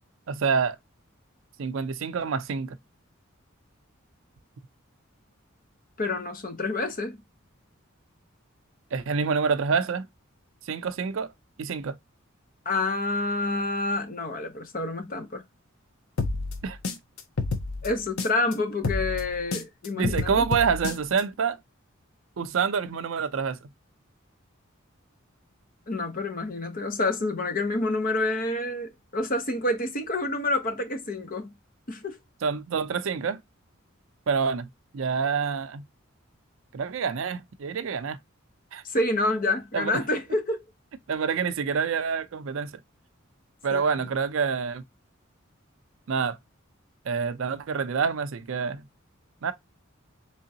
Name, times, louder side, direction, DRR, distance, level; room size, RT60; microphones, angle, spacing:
voice 1, 0.3-0.8 1.6-2.8 8.9-10.1 10.7-11.3 11.6-12.0 16.6-16.8 20.0-21.6 22.4-23.7 32.4-33.4 34.3-34.7 34.9-35.8 36.7-38.2 38.7-38.8 39.7-40.0 41.1-42.8 43.6-44.8 46.1-46.4 47.1-48.9 49.4-49.5, right 5 dB, 65° right, 0.4 m, -27 dB
voice 2, 6.0-7.2 12.7-15.4 17.8-20.4 25.9-31.5 31.9-32.2 38.8-40.6 43.7-44.1, left 2 dB, 40° left, 0.7 m, -28 dB
sound 1, 16.2-18.5 18.8-21.2, left 3 dB, 85° left, 0.6 m, -30 dB
3.7 x 3.4 x 2.7 m
head